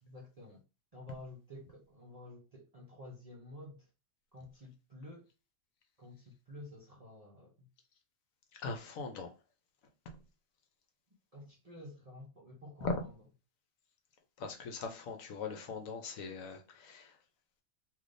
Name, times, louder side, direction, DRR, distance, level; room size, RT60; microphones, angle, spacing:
voice 1, 0.0-0.6 0.9-3.9 4.3-5.3 6.0-7.7 11.3-13.1, left 1 dB, 40° right, 0.5 m, -51 dB
voice 2, 8.6-9.3 12.8-13.0 14.4-17.2, left 4 dB, 70° left, 1.1 m, -40 dB
3.4 x 2.7 x 2.5 m
omnidirectional pair, 1.5 m